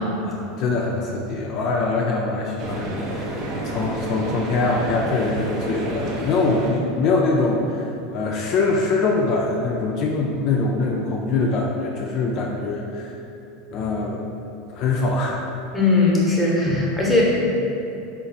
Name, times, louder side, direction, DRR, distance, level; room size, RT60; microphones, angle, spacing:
voice 1, 0.0-7.8 8.1-13.2 13.7-14.2 14.7-15.5, left 3 dB, 50° left, -1 dB, 0.3 m, -23 dB
sound 1, 2.6-6.7, right 2 dB, 50° right, 0.6 m, -30 dB
voice 2, 15.7-17.2, left 3 dB, 5° left, -5 dB, 0.8 m, -19 dB
3.8 x 2.4 x 2.6 m, 2.8 s
hypercardioid pair, 105°, 0 cm